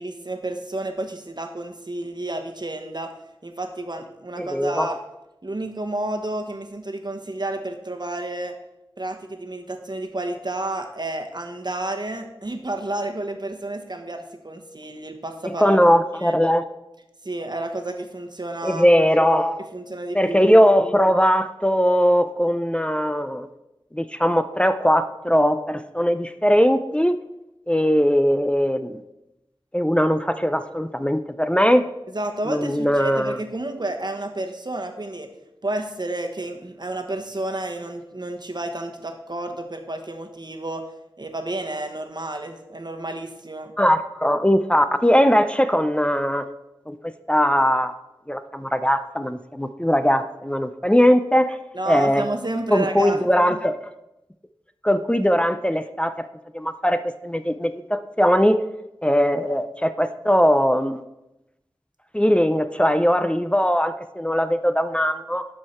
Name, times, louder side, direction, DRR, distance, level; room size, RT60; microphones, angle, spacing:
voice 1, 0.0-3.1 3.4-5.0 5.4-8.6 9.0-15.8 16.1-16.4 17.2-18.9 19.7-20.5 32.1-35.3 35.6-40.9 41.2-43.7 51.7-53.2 53.5-53.6, right 2 dB, 50° right, 5 dB, 1.0 m, -31 dB
voice 2, 4.4-4.9 15.4-16.6 18.6-19.7 20.1-23.5 23.9-27.2 27.7-29.0 29.7-31.8 32.5-33.4 43.8-46.5 46.9-47.0 47.3-48.0 48.3-51.6 51.9-52.3 52.7-53.7 54.8-56.1 56.5-58.6 59.0-61.0 62.1-65.5, equal, 10° left, 10 dB, 0.4 m, -20 dB
12.0 x 4.7 x 4.3 m, 0.91 s
wide cardioid pair, 45°, 9 cm